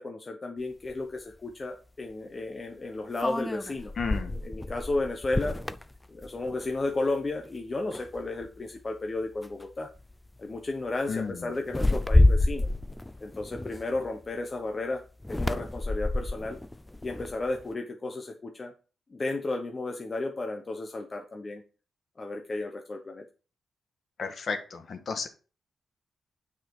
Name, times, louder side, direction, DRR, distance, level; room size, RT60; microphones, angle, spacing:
voice 1, 0.0-3.9 4.4-5.6 6.1-9.9 10.4-12.7 13.2-15.0 15.3-16.6 17.0-18.7 19.1-21.6 22.2-23.2, left 2 dB, 30° left, 3 dB, 1.0 m, -33 dB
sound 1, 0.9-1.0 3.2-6.8 7.2-7.5 7.9-8.6 9.4-9.6 10.0-10.3 11.6-14.3 15.2-17.6, left 2 dB, 10° left, 0.4 m, -28 dB
voice 2, 4.0-4.3 11.1-11.5 24.2-25.3, left 5 dB, 55° left, 5 dB, 1.6 m, -33 dB
9.1 x 4.9 x 4.7 m, 0.36 s
wide cardioid pair, 135°, 0 cm